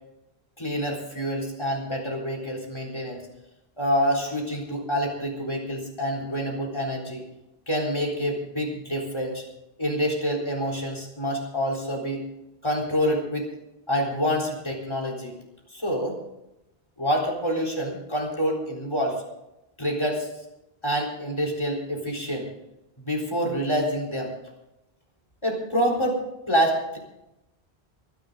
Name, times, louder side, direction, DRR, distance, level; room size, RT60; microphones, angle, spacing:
voice 1, 0.6-3.2 3.8-7.2 7.7-9.4 9.8-12.2 12.6-13.5 13.9-15.3 15.7-16.2 17.0-19.2 19.8-20.3 20.8-22.5 23.0-24.3 25.4-27.0, equal, 25° left, 0 dB, 4.0 m, -27 dB
24.5 x 10.5 x 3.9 m, 0.90 s
omnidirectional pair, 1.0 m